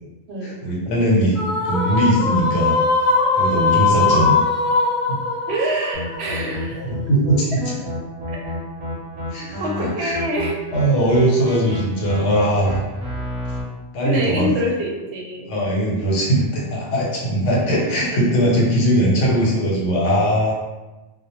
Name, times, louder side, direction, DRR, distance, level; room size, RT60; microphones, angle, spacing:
voice 1, 0.4-1.4 1.6-2.8 3.3-4.3 5.1-5.2 6.8-7.6 9.3-10.2 10.7-12.8 13.9-14.5 15.5-20.5, right 1 dB, 80° left, -3 dB, 1.0 m, -20 dB
sound 1, 1.4-6.8, left 3 dB, 45° left, 0.7 m, -20 dB
voice 2, 5.5-6.8 7.5-7.6 8.3-8.5 9.6-10.6 14.0-15.5 18.1-18.3 19.3-19.4, equal, 70° right, -2 dB, 0.8 m, -26 dB
sound 2, 5.9-13.6, left 1 dB, 40° right, 0.8 m, -31 dB
2.1 x 2.0 x 2.9 m, 1.1 s
omnidirectional pair, 1.2 m